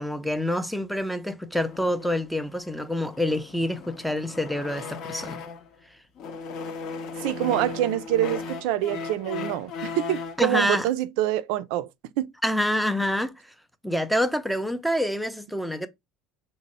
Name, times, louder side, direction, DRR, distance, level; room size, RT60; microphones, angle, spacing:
voice 1, 0.0-5.4 10.4-10.9 12.4-13.5 13.8-15.9, left 1 dB, ahead, 0.4 m, -27 dB
sound 1, 1.5-5.7 6.2-10.5, left 5 dB, 50° left, 0.6 m, -37 dB
voice 2, 7.2-11.9 12.2-12.3, right 13 dB, 75° right, 0.3 m, -26 dB
4.0 x 2.0 x 4.0 m
cardioid pair, 140°, 0 cm